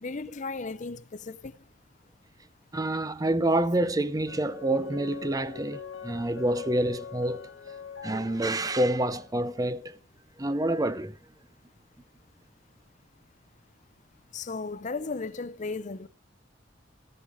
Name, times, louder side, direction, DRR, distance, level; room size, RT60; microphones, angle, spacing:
voice 1, 0.0-1.5 14.3-16.1, left 3 dB, 40° left, 0.6 m, -35 dB
voice 2, 2.7-7.5 8.0-10.0 10.4-11.1, right 1 dB, 20° right, 0.6 m, -27 dB
sound 1, 4.3-9.3, left 6 dB, 80° left, 1.4 m, -43 dB
17.0 x 5.7 x 5.1 m
head